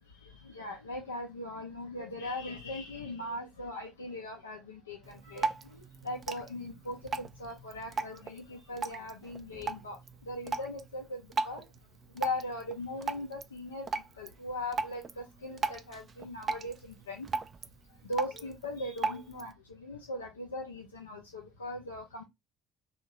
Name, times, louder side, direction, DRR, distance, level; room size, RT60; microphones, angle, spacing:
voice 1, 0.4-10.0 10.3-11.6 12.1-16.7 17.1-17.3 18.1-22.2, left 1 dB, 80° left, 0.5 m, -39 dB
Drip, 5.0-19.5, right 4 dB, 35° right, 0.3 m, -39 dB
2.8 x 2.4 x 2.8 m
figure-of-eight pair, 60°, 0 cm